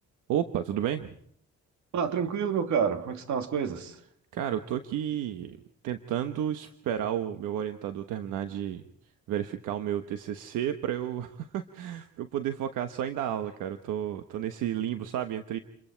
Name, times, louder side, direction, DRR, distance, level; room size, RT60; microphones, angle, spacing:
voice 1, 0.3-1.2 4.3-5.6 5.8-8.8 9.3-15.6, right 10 dB, 90° right, 1.2 m, -32 dB
voice 2, 1.9-4.0, right 7 dB, 70° right, 2.5 m, -28 dB
28.5 x 23.0 x 4.6 m
cardioid pair, 90°, 30 cm